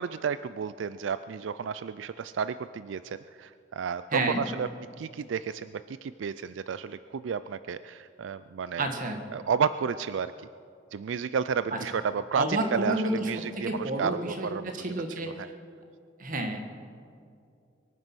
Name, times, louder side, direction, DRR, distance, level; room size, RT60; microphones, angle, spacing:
voice 1, 0.0-4.7 5.0-8.9 9.3-10.5 10.9-14.7 15.2-15.5, right 6 dB, 90° right, 14 dB, 0.4 m, -32 dB
voice 2, 4.1-4.4 8.8-9.2 11.7-11.8 12.3-15.3 16.2-16.6, right 1 dB, 45° right, 4 dB, 1.8 m, -30 dB
23.5 x 9.5 x 6.2 m, 2.4 s
head